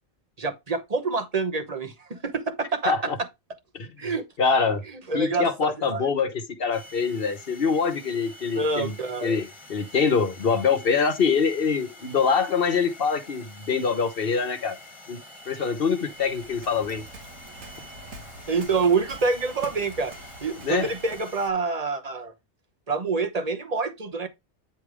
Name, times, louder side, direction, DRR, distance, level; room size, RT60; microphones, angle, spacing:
voice 1, 0.4-3.1 4.0-4.2 5.1-6.1 8.5-9.4 18.5-20.1 20.4-22.3 22.9-24.3, right 4 dB, 35° right, 1.0 m, -27 dB
voice 2, 2.9-3.2 3.7-4.1 4.4-4.8 5.1-9.0 9.2-14.8 15.1-17.0 20.6-20.9, left 5 dB, 50° left, 1.1 m, -25 dB
sound 1, 6.7-21.5, left 1 dB, 25° left, 1.4 m, -47 dB
Waves surf, 16.1-21.4, right 2 dB, 85° right, 1.7 m, -45 dB
9.5 x 3.5 x 4.8 m
omnidirectional pair, 1.3 m